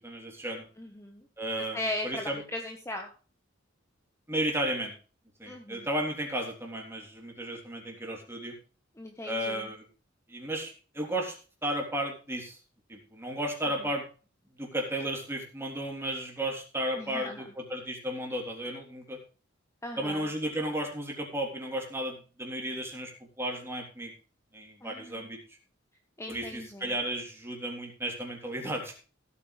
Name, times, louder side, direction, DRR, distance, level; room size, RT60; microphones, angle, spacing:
voice 1, 0.0-0.7 1.4-2.4 4.3-4.9 5.4-8.6 9.2-9.8 10.3-11.3 11.6-12.6 12.9-14.0 14.6-19.2 20.0-23.1 23.4-24.1 24.5-25.4 26.3-28.9, right 1 dB, 15° right, 1 dB, 3.6 m, -34 dB
voice 2, 0.8-1.3 1.7-3.1 5.5-5.9 9.0-9.7 17.0-17.5 19.8-20.3 24.8-25.3 26.2-26.9, left 1 dB, 15° left, 3 dB, 1.3 m, -38 dB
16.5 x 8.6 x 3.4 m, 0.36 s
head